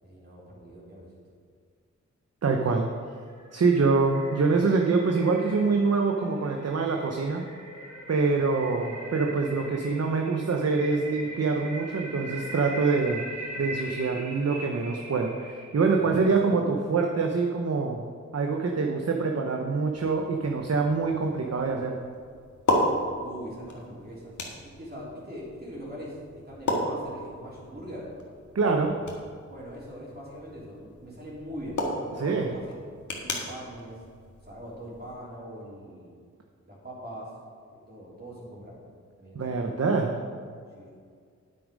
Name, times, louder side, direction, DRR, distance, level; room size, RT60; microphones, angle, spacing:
voice 1, 0.0-1.1 8.7-8.9 15.9-16.6 23.2-24.3 24.6-28.1 29.4-32.8 33.2-34.0 34.4-36.1 36.6-37.3 37.6-38.7 39.2-39.8 40.7-40.9, equal, 30° right, -7 dB, 3.3 m, -42 dB
voice 2, 2.4-2.9 3.5-7.4 8.1-13.2 13.6-18.0 18.3-22.0 28.5-29.0 32.2-32.5 39.3-40.2, right 4 dB, 55° right, 2 dB, 0.9 m, -25 dB
sound 1, 2.9-16.3, right 1 dB, 80° right, 2.8 m, -41 dB
sound 2, 19.9-35.1, left 1 dB, 80° left, 1.7 m, -35 dB
9.6 x 8.7 x 5.2 m, 2.1 s
wide cardioid pair, 85°, 30 cm